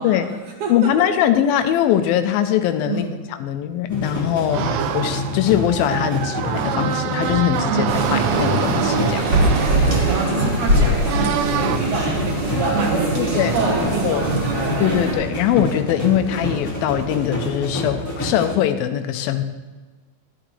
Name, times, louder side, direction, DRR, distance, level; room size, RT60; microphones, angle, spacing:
voice 1, 0.0-1.1 2.8-3.2 7.7-8.0 9.9-14.9, right 4 dB, 65° right, 1 dB, 2.4 m, -27 dB
voice 2, 0.7-3.1 3.4-9.4 9.8-9.9 13.2-13.6 14.0-14.3 14.8-19.4, left 10 dB, 85° left, 8 dB, 2.4 m, -21 dB
sound 1, 3.9-18.6, left 1 dB, 10° left, 0.8 m, -28 dB
sound 2, 4.5-10.2 11.1-11.8, right 11 dB, 80° right, 2.1 m, -26 dB
sound 3, 7.9-15.1, right 1 dB, 35° right, 2.3 m, -22 dB
12.5 x 11.0 x 3.2 m, 1.3 s
omnidirectional pair, 4.1 m